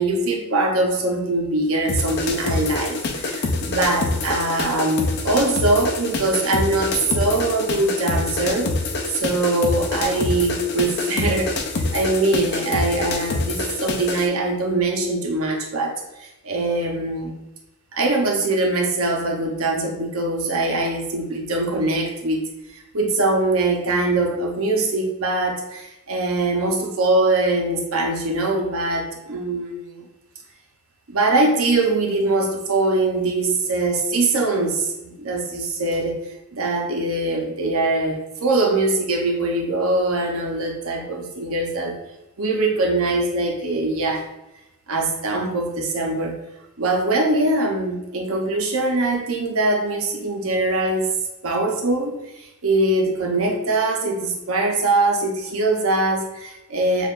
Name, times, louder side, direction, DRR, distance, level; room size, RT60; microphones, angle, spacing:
voice 1, 0.0-8.7 9.1-17.3 17.9-22.4 22.7-30.0 31.1-42.0 42.4-44.3 44.9-46.4 46.8-51.1 51.4-57.1, right 2 dB, 80° right, 1 dB, 0.8 m, -22 dB
sound 1, 1.9-14.3, left 3 dB, 50° left, 0.5 m, -26 dB
6.4 x 2.5 x 2.5 m, 0.94 s
head